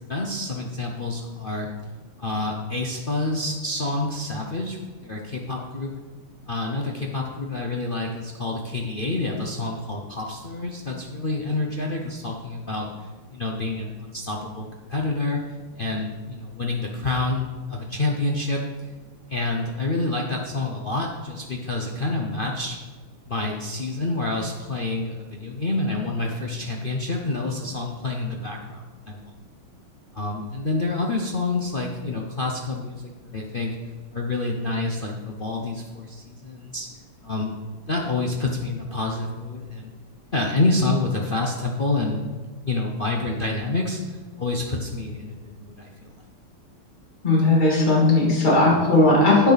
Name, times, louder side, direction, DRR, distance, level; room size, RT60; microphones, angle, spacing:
voice 1, 0.1-1.7 2.2-4.8 5.0-5.9 6.5-12.9 13.3-15.4 15.8-17.4 17.7-18.6 19.3-22.8 23.3-29.3 30.1-33.7 34.1-36.9 37.2-37.6 37.9-39.9 40.3-42.2 42.6-46.1, left 2 dB, 75° left, 0 dB, 0.5 m, -28 dB
voice 2, 47.2-49.5, left 2 dB, 20° left, -4 dB, 2.5 m, -17 dB
10.5 x 8.7 x 4.1 m, 1.4 s
omnidirectional pair, 2.4 m